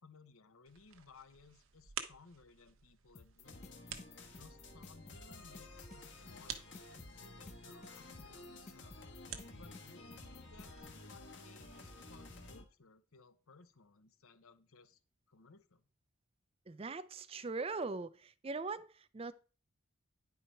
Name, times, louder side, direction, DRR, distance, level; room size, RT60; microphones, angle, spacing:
voice 1, 0.0-3.6 4.3-6.8 7.2-9.0 9.5-15.0 15.3-15.8, left 4 dB, 75° left, 0.8 m, -61 dB
sound 1, 0.7-10.8, right 8 dB, 65° right, 0.8 m, -52 dB
sound 2, 3.1-10.9, left 3 dB, 30° left, 0.6 m, -55 dB
sound 3, 3.4-12.6, left 2 dB, 55° left, 1.3 m, -53 dB
voice 2, 16.7-19.3, right 3 dB, 25° right, 0.4 m, -41 dB
9.9 x 4.7 x 4.5 m
head